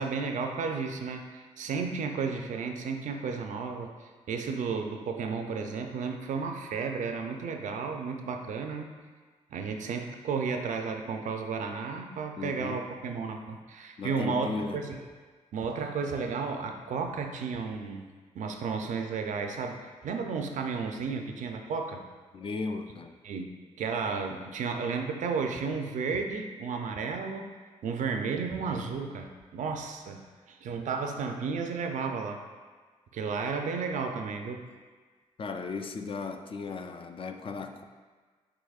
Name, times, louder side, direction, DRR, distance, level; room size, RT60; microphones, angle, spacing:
voice 1, 0.0-8.9 9.5-15.0 15.5-22.0 23.2-23.5 23.8-27.6 27.8-32.4 33.1-34.6, right 5 dB, 75° right, 4 dB, 0.5 m, -33 dB
voice 2, 12.4-12.9 14.0-14.9 22.3-23.1 35.4-37.8, left 4 dB, 45° left, 6 dB, 0.4 m, -36 dB
4.8 x 4.5 x 2.4 m, 1.4 s
cardioid pair, 75°, 13 cm